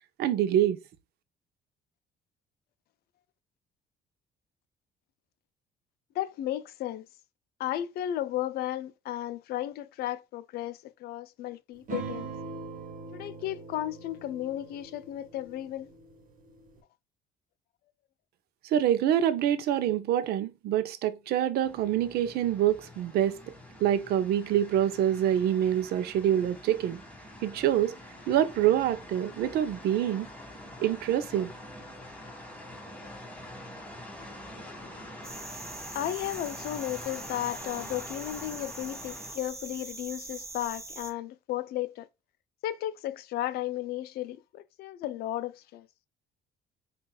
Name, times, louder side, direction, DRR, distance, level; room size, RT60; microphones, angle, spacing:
voice 1, 0.2-0.8 18.6-23.4 23.8-27.0 27.4-27.9 28.3-30.3 30.8-31.5, right 11 dB, 70° right, 0.5 m, -26 dB
voice 2, 6.2-7.0 7.6-12.3 13.1-15.9 35.9-42.1 42.6-45.9, left 13 dB, 70° left, 0.4 m, -34 dB
sound 1, 11.9-16.8, right 4 dB, 50° right, 0.9 m, -42 dB
sound 2, 21.6-39.4, left 1 dB, 10° left, 1.6 m, -45 dB
sound 3, 35.2-41.1, right 3 dB, 15° right, 0.6 m, -43 dB
5.4 x 2.4 x 2.3 m
cardioid pair, 110°, 17 cm